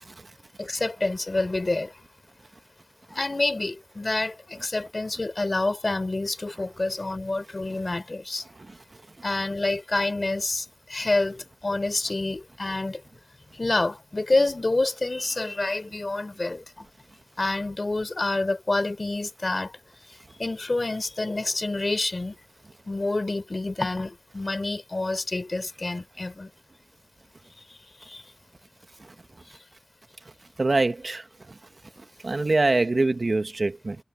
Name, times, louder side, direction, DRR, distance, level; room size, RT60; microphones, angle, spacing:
voice 1, 0.6-1.9 3.1-8.5 9.2-13.0 13.5-16.9 17.4-19.8 20.3-22.4 22.9-26.5 27.7-28.3 29.4-29.6, left 2 dB, 40° left, 3.6 m, -28 dB
voice 2, 30.6-31.3 32.2-34.0, right 2 dB, 50° right, 1.2 m, -23 dB
wide cardioid pair, 90°, 0 cm